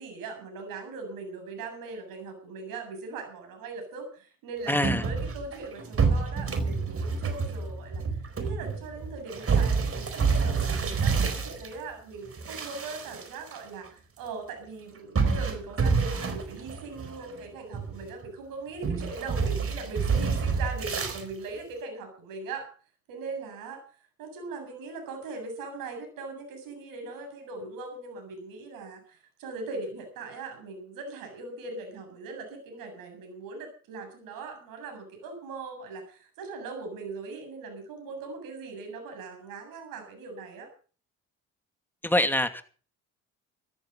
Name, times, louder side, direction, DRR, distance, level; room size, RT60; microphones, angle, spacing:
voice 1, 0.0-8.0 8.4-22.7 23.1-23.8 24.2-40.7, right 3 dB, 80° right, 5 dB, 7.6 m, -40 dB
voice 2, 4.7-5.0 42.0-42.6, left 1 dB, 5° left, 7 dB, 2.6 m, -24 dB
sound 1, 4.8-11.7 12.3-13.6 13.9-14.0 15.2-17.4 17.7-18.3 18.8-21.2, right 5 dB, 40° right, 4.3 m, -28 dB
14.0 x 14.0 x 5.5 m, 0.40 s
supercardioid pair, 65°, 33 cm